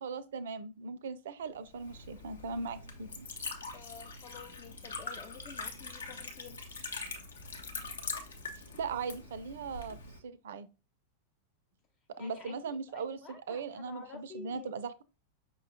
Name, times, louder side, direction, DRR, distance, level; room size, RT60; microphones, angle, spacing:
voice 1, 0.0-3.3 8.5-10.0 10.2-10.7 12.2-15.0, right 5 dB, 60° right, 0.5 m, -39 dB
Liquid, 1.6-10.2, left 3 dB, 70° left, 0.8 m, -43 dB
voice 2, 3.7-6.6 12.2-14.7, left 6 dB, 35° left, 0.4 m, -51 dB
5.5 x 2.3 x 3.5 m
figure-of-eight pair, 90°, 0 cm